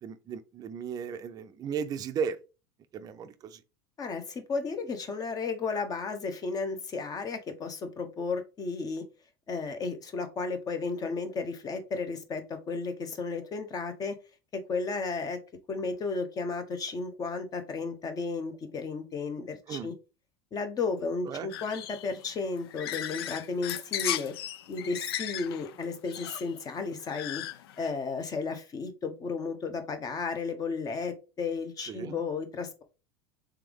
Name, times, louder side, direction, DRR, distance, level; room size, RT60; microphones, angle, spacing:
voice 1, 0.0-2.4 2.9-3.6 19.7-19.9 21.2-21.6 31.8-32.2, right 6 dB, 30° right, 0.5 m, -35 dB
voice 2, 4.0-9.0 9.5-14.2 14.5-15.4 15.7-19.9 20.5-24.3 24.7-27.4 27.8-32.8, left 4 dB, 30° left, 0.8 m, -33 dB
sound 1, 21.5-27.9, left 11 dB, 85° left, 0.4 m, -36 dB
3.5 x 3.4 x 3.5 m
supercardioid pair, 115°, 13 cm